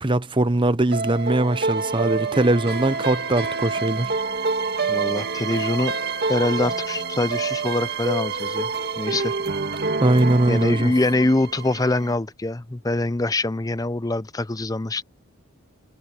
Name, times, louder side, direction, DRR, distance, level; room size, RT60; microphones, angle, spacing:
voice 1, 0.0-4.1 10.0-10.9, right 1 dB, 20° right, 0.9 m, -21 dB
sound 1, 0.9-12.1, right 4 dB, 45° right, 2.1 m, -27 dB
voice 2, 4.9-6.0 6.3-8.7 9.0-9.3 10.5-15.0, left 2 dB, 15° left, 0.6 m, -24 dB
head